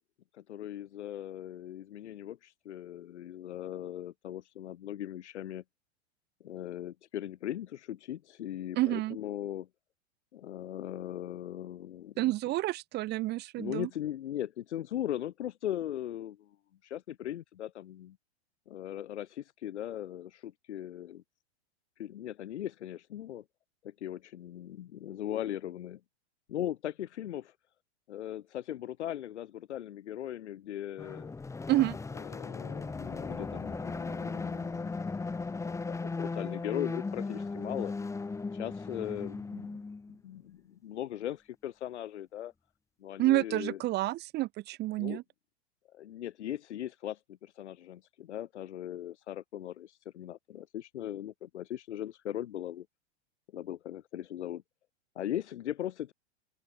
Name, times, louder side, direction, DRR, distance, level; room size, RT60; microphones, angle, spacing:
voice 1, 0.3-5.6 6.4-9.7 10.3-12.3 13.6-16.5 16.8-18.2 18.7-21.2 22.0-23.4 23.8-26.0 26.5-27.5 28.1-31.3 32.1-35.1 35.6-37.9 38.5-39.8 40.2-42.5 43.0-43.8 45.0-45.2 45.9-52.9 53.5-54.6 55.1-56.1, left 12 dB, 85° left, 2.9 m, -39 dB
voice 2, 8.7-9.2 12.2-13.9 31.7-32.0 43.2-45.2, right 17 dB, 30° right, 1.5 m, -29 dB
sound 1, 31.0-40.2, left 4 dB, 10° left, 3.4 m, -37 dB
open air
supercardioid pair, 145°, 33 cm